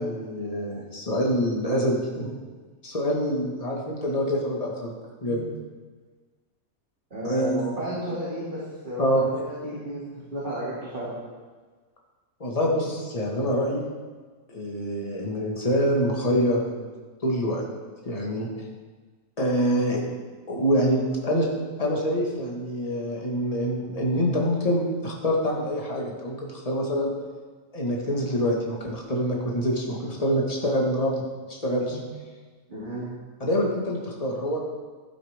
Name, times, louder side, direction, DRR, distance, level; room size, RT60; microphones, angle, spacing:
voice 1, 0.0-2.4 2.8-4.9 5.2-5.4 7.2-7.7 9.0-9.2 12.4-13.8 14.5-16.9 17.2-17.6 18.1-18.6 19.4-20.0 20.5-21.5 21.8-27.1 27.7-31.2 31.5-32.0 33.4-34.6, equal, 25° left, -2 dB, 1.8 m, -25 dB
voice 2, 7.1-11.1 12.8-12.9 31.9-32.0 32.7-33.1, right 1 dB, 35° right, -10 dB, 2.8 m, -33 dB
12.0 x 10.0 x 3.6 m, 1.4 s
omnidirectional pair, 1.5 m